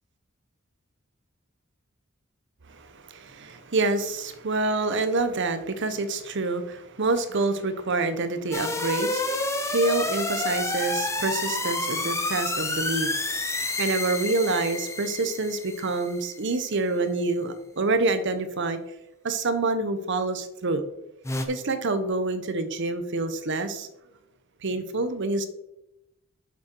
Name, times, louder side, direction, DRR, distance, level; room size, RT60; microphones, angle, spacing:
voice 1, 2.7-18.8 19.2-20.8 21.5-23.9 24.6-25.5, right 3 dB, 60° right, 10 dB, 0.9 m, -27 dB
sound 1, 8.5-16.4 21.2-21.4, left 2 dB, 15° left, 0.9 m, -29 dB
7.8 x 7.2 x 4.5 m, 0.88 s
head